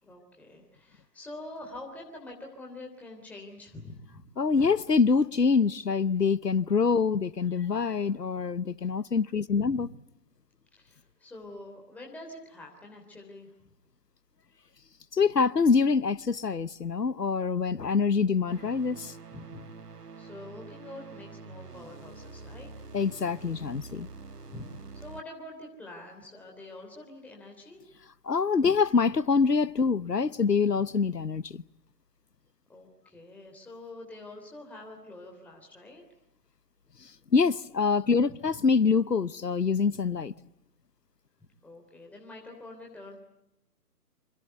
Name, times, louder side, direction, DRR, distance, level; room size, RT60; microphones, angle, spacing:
voice 1, 0.0-4.3 9.6-9.9 10.8-13.5 19.3-19.6 20.2-22.7 24.5-27.8 32.7-36.0 38.3-38.4 41.6-43.2, left 2 dB, 5° left, 3.3 m, -46 dB
voice 2, 4.4-9.9 15.1-19.2 22.9-24.1 28.2-31.6 37.0-40.3, left 5 dB, 90° left, 1.1 m, -25 dB
sound 1, 18.5-25.2, right 4 dB, 75° right, 1.7 m, -46 dB
28.0 x 25.5 x 8.0 m
figure-of-eight pair, 140°, 47 cm